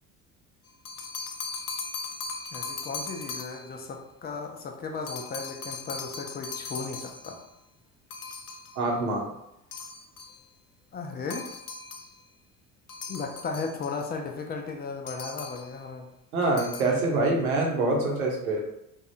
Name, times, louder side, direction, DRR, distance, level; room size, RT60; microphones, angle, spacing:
sound 1, 0.7-3.8 5.1-7.5 8.1-8.8 9.7-10.4 11.3-12.2 12.9-14.1 15.1-15.8 16.4-17.0, left 4 dB, 85° left, 0.5 m, -39 dB
voice 1, 2.5-7.4 10.9-11.5 13.1-16.1, left 4 dB, 20° left, 3 dB, 0.6 m, -35 dB
voice 2, 8.8-9.2 16.3-18.6, right 2 dB, 75° right, -1 dB, 1.0 m, -25 dB
3.4 x 2.4 x 4.1 m, 0.84 s
figure-of-eight pair, 60°, 44 cm